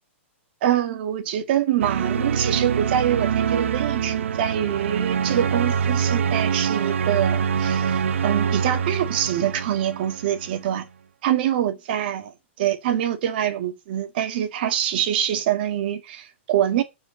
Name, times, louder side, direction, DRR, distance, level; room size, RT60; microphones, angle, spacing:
voice 1, 0.6-10.9 11.2-12.3 12.6-16.8, right 11 dB, 50° right, 1.9 m, -25 dB
sound 1, 1.8-10.6, right 7 dB, 85° right, 0.9 m, -24 dB
7.9 x 4.7 x 6.9 m
hypercardioid pair, 155°, 7 cm